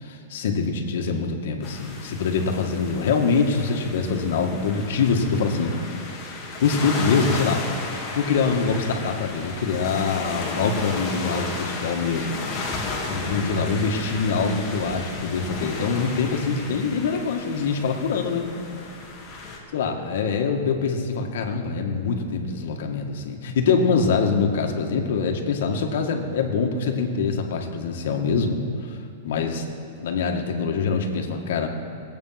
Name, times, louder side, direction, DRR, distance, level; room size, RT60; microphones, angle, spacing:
voice 1, 0.0-5.7 6.6-7.7 8.2-12.4 13.1-18.5 19.7-29.0 29.2-29.7 30.0-31.7, left 5 dB, 70° left, 3 dB, 1.8 m, -24 dB
sound 1, 1.6-19.6, left 3 dB, 20° left, 2.2 m, -34 dB
20.0 x 8.6 x 5.9 m, 2.8 s
supercardioid pair, 160°, 0 cm